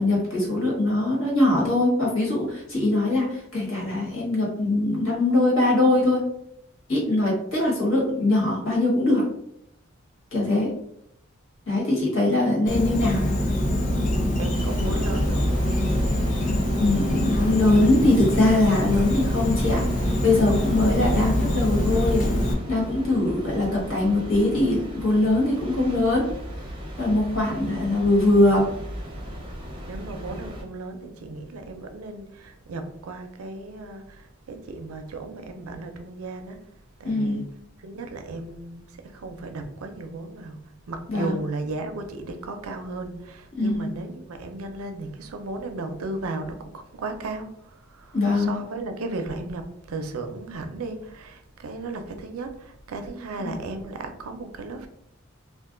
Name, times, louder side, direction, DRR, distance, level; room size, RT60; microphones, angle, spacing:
voice 1, 0.0-6.3 6.9-9.3 10.3-10.7 11.7-13.2 16.8-22.3 22.7-26.3 27.0-28.7 37.0-37.5 41.1-41.4 43.6-43.8 48.1-48.6 53.4-53.6, left 2 dB, 75° left, 1.4 m, -22 dB
Insect, 12.7-22.5, left 1 dB, 35° left, 0.5 m, -24 dB
voice 2, 14.4-15.6 29.8-36.6 37.0-37.5 37.8-40.6 40.9-54.9, right 2 dB, 85° right, 0.5 m, -35 dB
sound 1, 14.5-30.6, equal, 25° right, 0.5 m, -36 dB
2.5 x 2.2 x 3.7 m
head